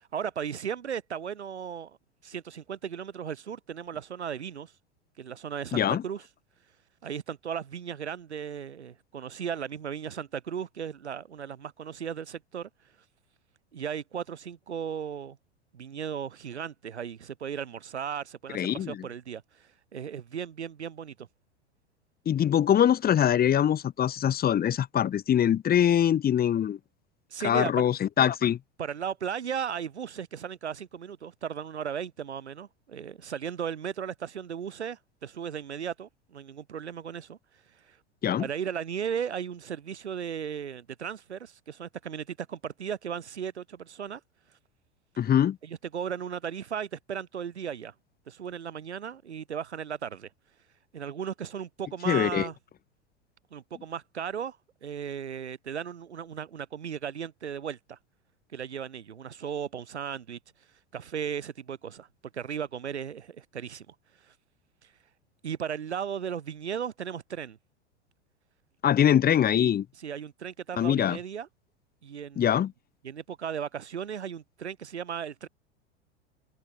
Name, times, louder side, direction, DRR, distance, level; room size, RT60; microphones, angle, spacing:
voice 1, 0.1-2.0 2.2-4.7 5.2-6.2 7.0-12.7 13.7-15.4 15.7-21.3 27.3-27.9 28.8-37.4 37.9-38.0 38.4-44.2 45.6-47.9 48.3-50.3 50.9-52.6 53.5-54.6 54.8-58.0 58.5-60.4 60.9-62.1 62.3-63.9 64.2-64.3 64.8-64.9 65.4-67.6 69.5-69.7 70.0-71.5 72.0-72.6 73.0-75.5, right 8 dB, 80° right, 2.2 m, -36 dB
voice 2, 5.7-6.0 18.5-19.0 22.3-26.8 27.4-28.6 38.2-38.5 45.2-45.6 52.1-52.5 68.8-69.8 70.8-71.2 72.4-72.7, left 10 dB, 30° left, 2.2 m, -23 dB
figure-of-eight pair, 90°, 33 cm